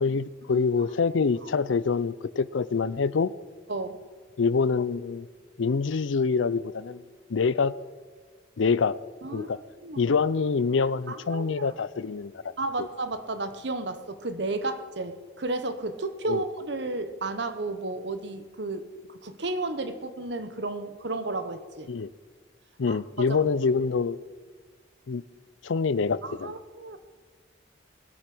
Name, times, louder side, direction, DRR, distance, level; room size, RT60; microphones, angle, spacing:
voice 1, 0.0-3.3 4.4-5.3 5.6-7.0 7.3-7.7 8.6-8.9 9.3-9.6 10.0-12.4 12.8-12.9 16.3-16.4 21.9-22.1 22.8-24.2 25.1-25.2 25.6-26.5, left 5 dB, 80° left, 0.5 m, -25 dB
voice 2, 3.7-4.0 9.2-9.5 9.8-10.1 10.8-11.7 12.6-18.9 19.2-21.9 22.9-23.0 23.3-23.4 26.2-27.0, right 2 dB, 65° right, 1.1 m, -33 dB
19.5 x 8.4 x 6.2 m
head